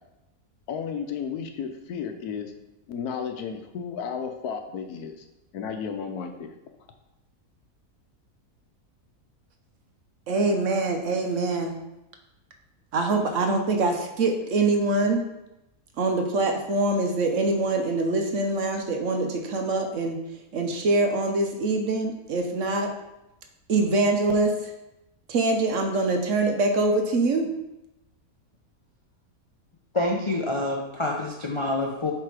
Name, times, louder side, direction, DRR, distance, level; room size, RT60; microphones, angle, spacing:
voice 1, 0.7-2.5 2.9-5.3 5.5-6.5, left 6 dB, 80° left, 6 dB, 1.2 m, -33 dB
voice 2, 10.3-11.7 12.9-15.2 16.0-20.2 20.5-22.9 23.7-24.7 25.3-27.5, right 2 dB, 60° right, 4 dB, 1.0 m, -24 dB
voice 3, 29.9-32.1, left 2 dB, 40° left, -1 dB, 0.4 m, -27 dB
7.6 x 3.3 x 4.8 m, 0.92 s
omnidirectional pair, 1.6 m